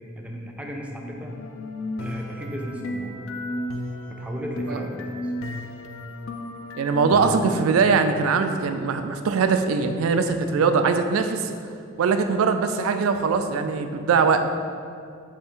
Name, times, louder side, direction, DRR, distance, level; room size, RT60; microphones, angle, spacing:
voice 1, 0.2-1.4 2.0-3.3 4.1-5.3, equal, 5° right, 0 dB, 0.4 m, -35 dB
sound 1, 1.3-7.7, left 1 dB, 75° left, 0.4 m, -33 dB
voice 2, 6.8-11.5 12.0-14.4, right 5 dB, 90° right, 8 dB, 0.3 m, -21 dB
3.5 x 3.2 x 4.4 m, 2.4 s
head